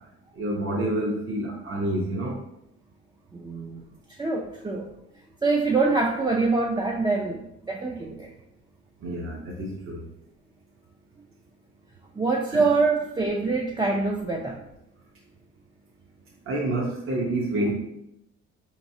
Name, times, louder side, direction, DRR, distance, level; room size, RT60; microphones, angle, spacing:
voice 1, 0.4-2.4 9.0-10.0 12.5-12.7 16.5-17.7, right 1 dB, 45° right, -3 dB, 0.8 m, -28 dB
voice 2, 3.3-3.8 4.1-4.9 5.4-8.3 12.2-14.6, right 3 dB, 15° right, -1 dB, 0.4 m, -25 dB
4.7 x 3.0 x 2.7 m, 0.82 s
cardioid pair, 90°, 30 cm